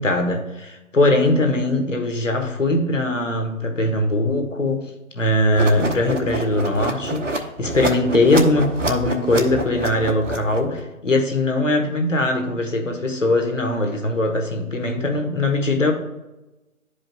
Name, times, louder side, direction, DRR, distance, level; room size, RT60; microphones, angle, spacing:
voice 1, 0.0-4.8 5.1-15.9, left 2 dB, 60° left, 3 dB, 1.3 m, -21 dB
sound 1, 5.5-10.8, right 2 dB, 55° right, 0.9 m, -27 dB
11.5 x 5.1 x 2.3 m, 1.0 s
figure-of-eight pair, 155°, 43 cm